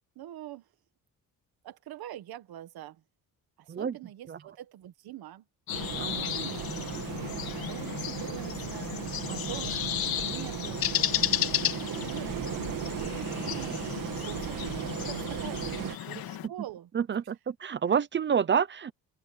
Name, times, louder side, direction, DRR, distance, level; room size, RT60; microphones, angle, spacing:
voice 1, 0.1-0.6 1.6-3.0 3.6-5.4 5.9-6.7 7.4-8.9 9.5-10.9 11.3-13.8 14.3-16.9, right 13 dB, 85° right, 1.7 m, -44 dB
sound 1, 5.7-16.5, left 11 dB, 80° left, 3.0 m, -33 dB
sound 2, 5.7-16.0, right 10 dB, 65° right, 2.6 m, -36 dB
voice 2, 6.0-6.3 9.3-9.6 15.8-15.9 16.9-18.9, right 7 dB, 30° right, 0.7 m, -29 dB
open air
cardioid pair, 165°, 36 cm